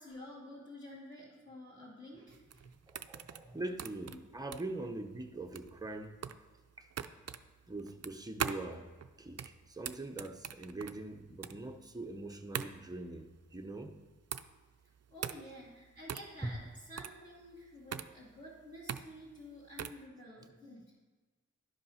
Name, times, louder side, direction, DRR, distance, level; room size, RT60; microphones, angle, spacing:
voice 1, 0.0-2.7 4.0-4.2 15.1-21.0, left 1 dB, 25° left, -9 dB, 2.4 m, -51 dB
sound 1, 2.3-20.1, right 7 dB, 55° right, 0.4 m, -43 dB
voice 2, 2.8-6.2 6.8-6.9 7.7-8.9 9.2-13.9 16.4-16.5, right 2 dB, 10° right, 4 dB, 0.7 m, -42 dB
11.5 x 5.3 x 5.6 m, 1.3 s
wide cardioid pair, 80°, 31 cm